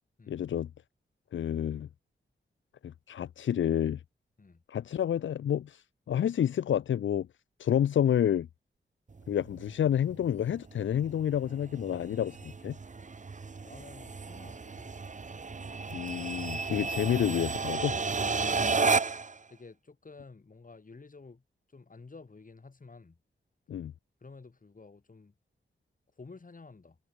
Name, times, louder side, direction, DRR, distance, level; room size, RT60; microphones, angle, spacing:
voice 1, 0.3-0.7 1.3-1.9 2.8-4.0 4.7-7.3 7.6-8.5 9.3-12.8 15.9-18.0 23.7-23.9, left 9 dB, 75° left, 0.4 m, -29 dB
sound 1, 9.1-19.4, right 4 dB, 40° right, 1.1 m, -33 dB
voice 2, 13.6-15.1 18.8-19.0 19.5-21.4 21.7-23.2 24.2-25.3 26.2-27.0, left 4 dB, 40° left, 4.7 m, -51 dB
wide cardioid pair, 95°, 20 cm